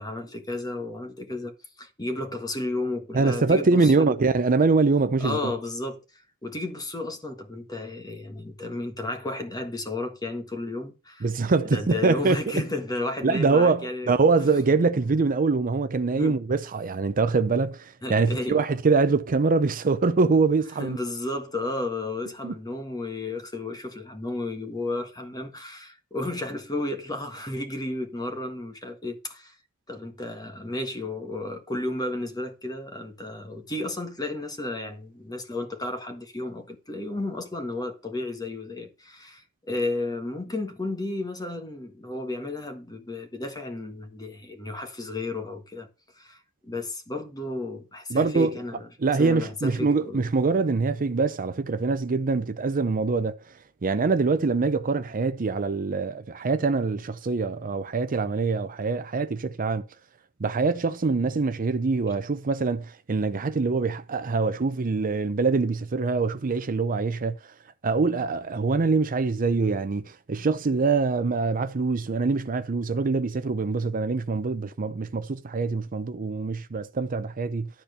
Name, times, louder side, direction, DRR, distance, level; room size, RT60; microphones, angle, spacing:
voice 1, 0.0-4.1 5.2-11.3 11.6-14.1 16.1-16.4 18.0-18.6 20.8-29.6 29.9-45.9 46.2-48.9 49.2-50.3, left 2 dB, 15° left, 1.5 m, -33 dB
voice 2, 3.1-5.5 11.2-12.4 13.2-21.0 22.4-22.5 48.1-48.5 49.0-53.3 53.8-59.8 60.4-67.4 67.8-77.7, right 4 dB, 40° right, 0.6 m, -24 dB
12.5 x 4.3 x 6.7 m
head